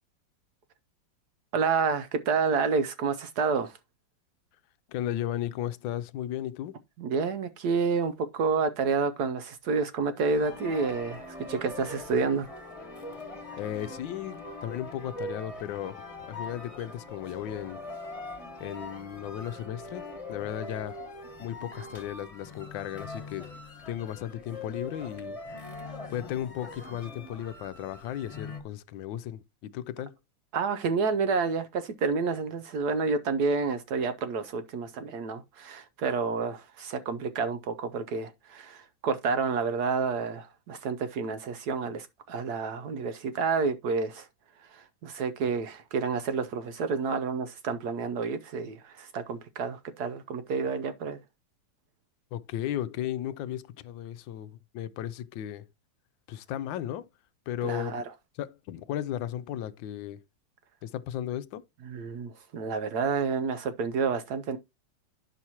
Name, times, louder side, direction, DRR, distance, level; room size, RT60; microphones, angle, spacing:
voice 1, 1.5-3.8 7.0-12.5 30.5-44.3 44.7-51.2 57.6-58.0 61.9-64.6, right 5 dB, 65° right, 1.1 m, -29 dB
voice 2, 4.9-6.8 13.6-16.0 16.3-17.8 18.6-21.0 21.4-23.5 23.9-25.4 26.1-30.2 52.3-55.7 56.3-57.1 57.5-58.0 58.4-60.2 60.8-61.6, left 11 dB, 80° left, 1.3 m, -35 dB
sound 1, 10.3-28.6, left 2 dB, 20° left, 1.3 m, -42 dB
9.7 x 6.0 x 2.8 m
omnidirectional pair, 2.1 m